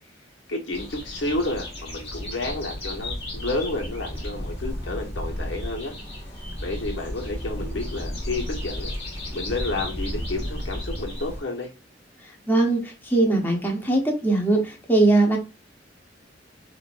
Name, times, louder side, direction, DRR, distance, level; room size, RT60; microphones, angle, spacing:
voice 1, 0.5-5.9 6.6-8.9 9.3-11.7, left 2 dB, 75° left, 1.3 m, -30 dB
sound 1, 0.7-11.4, left 1 dB, 35° left, 2.0 m, -33 dB
voice 2, 12.5-15.4, right 2 dB, 10° left, 1.0 m, -21 dB
6.6 x 2.6 x 2.6 m
head